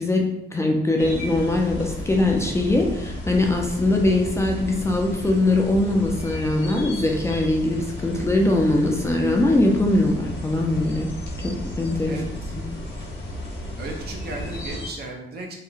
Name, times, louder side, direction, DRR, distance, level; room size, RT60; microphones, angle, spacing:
voice 1, 0.0-11.1 11.4-12.2 12.6-12.7, left 2 dB, 15° left, 0 dB, 0.3 m, -22 dB
sound 1, 1.0-14.9, left 1 dB, 65° left, 0.8 m, -33 dB
voice 2, 12.1-12.5 13.8-15.6, right 2 dB, 55° right, 1 dB, 0.6 m, -35 dB
2.7 x 2.1 x 2.4 m, 0.84 s
cardioid pair, 90°, 20 cm